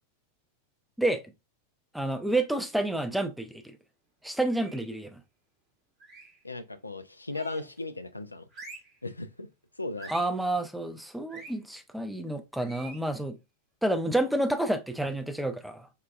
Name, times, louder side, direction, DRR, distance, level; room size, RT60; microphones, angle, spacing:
voice 1, 1.9-3.8 4.2-5.2 10.1-13.4 13.8-15.9, right 1 dB, ahead, 0.5 m, -29 dB
sound 1, 4.5-5.0 6.0-6.4 7.3-7.8 8.5-9.0 10.0-10.4 11.3-11.6 12.6-13.1, right 2 dB, 25° right, 1.1 m, -47 dB
voice 2, 6.4-8.4 9.0-9.5 9.8-10.1, left 2 dB, 85° left, 0.3 m, -36 dB
4.6 x 2.2 x 2.3 m
figure-of-eight pair, 90°, 0 cm